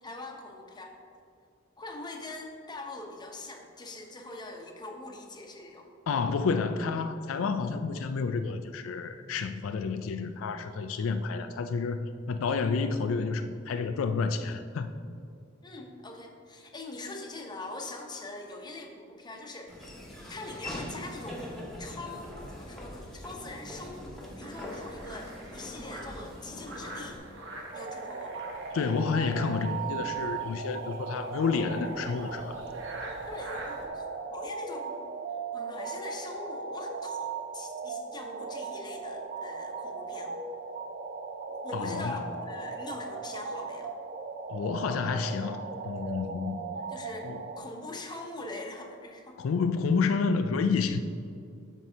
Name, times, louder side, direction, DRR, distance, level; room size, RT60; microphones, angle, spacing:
voice 1, 0.0-0.9 1.8-5.9 15.6-19.7 20.3-21.4 21.8-27.2 27.7-28.5 33.3-35.0 35.5-40.3 41.5-43.9 46.9-47.3 47.6-49.4, left 2 dB, 20° left, 1 dB, 0.8 m, -42 dB
voice 2, 6.1-14.9 28.7-32.6 41.7-42.2 44.5-46.6 47.2-47.4 49.4-51.0, left 5 dB, 75° left, 8 dB, 0.4 m, -30 dB
Laughter / Walk footsteps, 19.7-27.2, left 1 dB, ahead, 1.4 m, -42 dB
sound 1, 24.4-33.9, right 1 dB, 65° right, 1.2 m, -46 dB
sound 2, 27.7-47.6, right 5 dB, 45° right, 0.5 m, -38 dB
12.5 x 4.6 x 2.8 m, 2.5 s
head